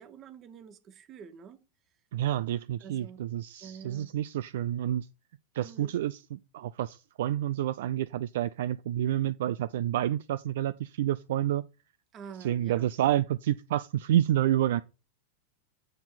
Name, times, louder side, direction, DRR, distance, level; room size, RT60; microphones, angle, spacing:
voice 1, 0.0-1.6 2.8-3.2 3.6-4.1 5.6-6.0 12.1-12.9, right 7 dB, 30° right, 1.2 m, -47 dB
voice 2, 2.1-5.1 5.5-11.6 12.4-14.8, right 12 dB, 55° right, 0.3 m, -29 dB
9.1 x 4.3 x 5.7 m
figure-of-eight pair, 90°, 0 cm